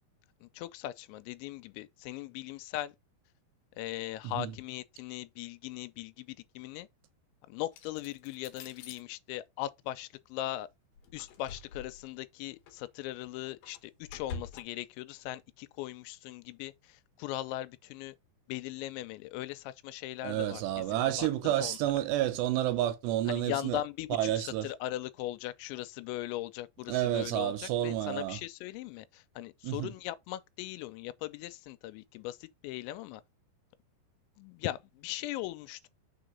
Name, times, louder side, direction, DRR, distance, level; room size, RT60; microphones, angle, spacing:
voice 1, 0.4-2.9 3.8-6.9 7.5-10.7 11.1-18.1 18.5-20.6 20.9-21.9 23.3-33.2 34.4-35.9, left 15 dB, 90° left, 2.9 m, -39 dB
sound 1, 7.7-9.0 11.0-12.1 12.7-12.8 13.2-14.6, left 5 dB, 65° left, 2.3 m, -46 dB
voice 2, 20.2-23.8 24.2-24.7 26.9-28.4 29.6-29.9, right 13 dB, 75° right, 3.1 m, -30 dB
6.3 x 3.9 x 5.1 m
omnidirectional pair, 5.2 m